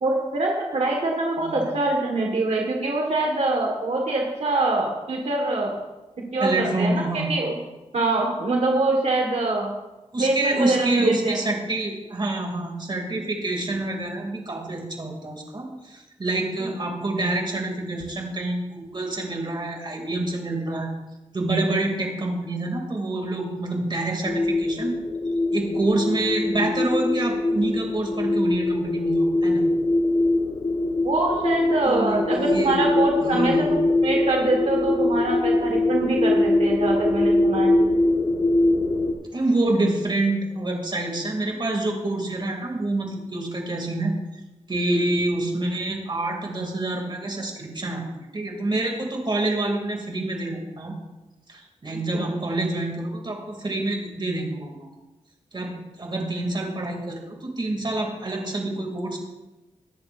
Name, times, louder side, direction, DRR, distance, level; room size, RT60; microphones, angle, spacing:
voice 1, 0.0-5.8 6.3-7.5 7.9-9.7 10.2-11.4 16.6-16.8 31.0-37.8 52.1-52.3, right 2 dB, 70° right, 0 dB, 1.7 m, -24 dB
voice 2, 1.4-1.7 6.4-7.3 10.1-20.9 21.3-24.9 25.5-29.6 31.9-32.7 33.2-33.8 39.3-44.1 44.7-50.9 51.5-54.9 55.5-55.7 56.0-59.3, right 2 dB, 40° right, 1 dB, 2.8 m, -27 dB
sound 1, 24.2-39.1, left 2 dB, 55° left, 1.7 m, -22 dB
21.5 x 10.5 x 2.7 m, 1.1 s
wide cardioid pair, 105°, 12 cm